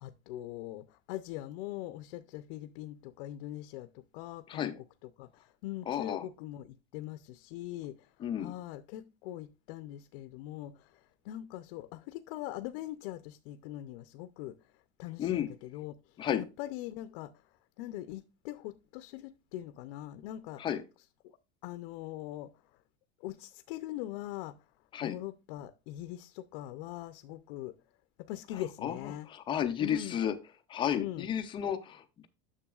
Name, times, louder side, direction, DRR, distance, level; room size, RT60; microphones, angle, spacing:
voice 1, 0.0-4.7 5.2-8.1 8.4-14.6 15.0-15.9 16.4-17.3 17.8-20.6 21.6-22.5 23.2-24.5 25.0-27.7 28.2-29.3 29.8-30.2 31.0-31.3, left 14 dB, 60° left, 0.6 m, -42 dB
voice 2, 5.9-6.3 8.2-8.5 15.2-15.5 16.2-16.4 20.6-20.8 24.9-25.2 28.5-30.3 30.7-32.3, left 9 dB, 15° left, 0.3 m, -33 dB
9.9 x 6.8 x 2.3 m
cardioid pair, 180°, 32 cm